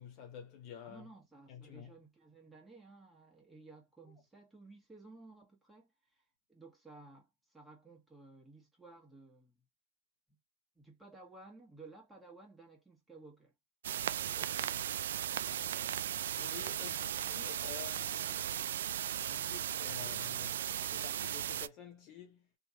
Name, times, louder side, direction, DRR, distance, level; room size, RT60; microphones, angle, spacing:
voice 1, 0.0-1.0 1.5-1.9 4.0-4.1 14.3-14.9 15.5-19.0 19.3-22.5, left 8 dB, 40° left, 0.9 m, -51 dB
voice 2, 0.8-6.2 6.5-9.6 10.3-10.4 10.7-13.5, right 3 dB, 5° right, 1.3 m, -56 dB
sound 1, 13.8-21.7, right 10 dB, 70° right, 0.3 m, -37 dB
3.1 x 2.5 x 2.8 m
hypercardioid pair, 130°, 0 cm